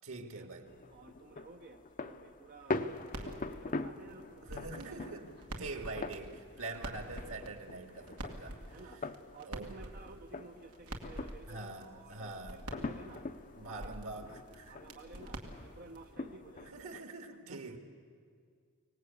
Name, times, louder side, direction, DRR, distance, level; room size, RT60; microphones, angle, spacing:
voice 1, 0.0-0.7 4.4-5.3 5.6-8.6 9.5-9.7 11.5-12.6 13.6-14.8 16.6-17.8, right 3 dB, 65° right, 2.1 m, -44 dB
sound 1, 0.7-17.0, left 3 dB, 35° left, 0.6 m, -44 dB
voice 2, 0.9-4.5 4.9-5.0 5.4-5.9 8.7-9.0 9.3-13.3 13.6-14.1 14.7-17.0 17.5-17.8, right 3 dB, 45° right, 0.7 m, -54 dB
sound 2, 2.7-16.1, right 1 dB, 90° right, 2.3 m, -48 dB
24.0 x 18.5 x 8.5 m
head